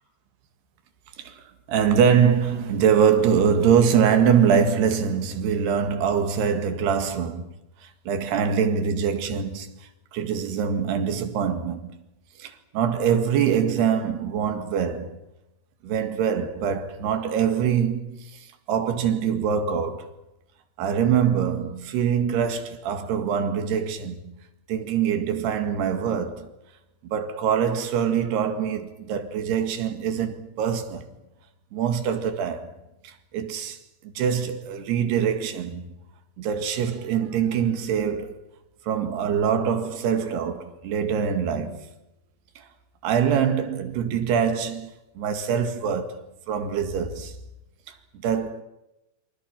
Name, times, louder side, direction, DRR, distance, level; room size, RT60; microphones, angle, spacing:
voice 1, 1.2-7.5 7.8-12.0 12.4-15.2 15.8-20.1 20.8-24.4 24.7-26.5 27.0-31.1 31.7-32.7 33.0-33.8 34.0-35.9 36.4-38.4 38.9-41.9 42.6-42.7 43.0-46.2 46.5-47.4 48.2-48.6, right 7 dB, 80° right, 4.0 m, -24 dB
28.5 x 24.0 x 5.9 m
omnidirectional pair, 4.6 m